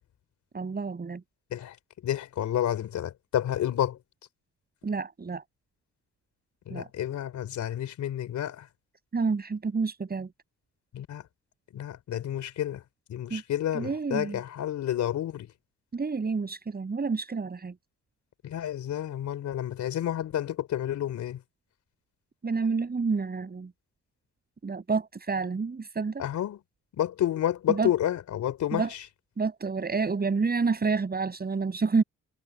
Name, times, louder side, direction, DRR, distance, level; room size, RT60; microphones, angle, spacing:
voice 1, 0.5-1.2 4.8-5.4 6.7-6.9 9.1-10.3 13.3-13.4 13.7-14.4 15.9-17.7 22.4-23.7 24.6-26.2 27.7-27.9 28.7-28.9 29.4-32.0, right 4 dB, 30° right, 7.0 m, -29 dB
voice 2, 2.0-4.0 6.7-8.6 10.9-11.2 11.7-12.8 13.1-15.5 18.4-21.4 26.2-26.6 27.0-28.9, left 11 dB, 70° left, 3.8 m, -30 dB
cardioid pair, 90°, 30 cm